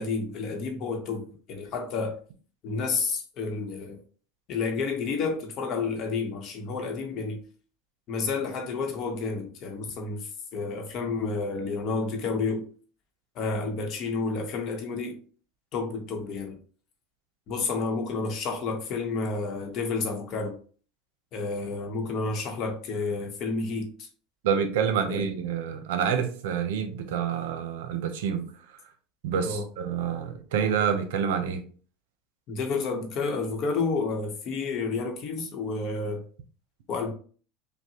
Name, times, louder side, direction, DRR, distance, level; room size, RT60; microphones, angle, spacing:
voice 1, 0.0-2.1 2.6-4.0 4.5-7.4 8.1-12.6 13.3-15.2 15.7-16.6 17.5-20.5 21.3-24.1 25.1-25.2 29.4-29.6 32.5-36.2 36.9-37.1, left 4 dB, 45° left, 0.9 m, -30 dB
voice 2, 24.4-28.5 29.2-31.6, right 7 dB, 85° right, 0.7 m, -27 dB
5.6 x 2.2 x 2.9 m
supercardioid pair, 150°, 0 cm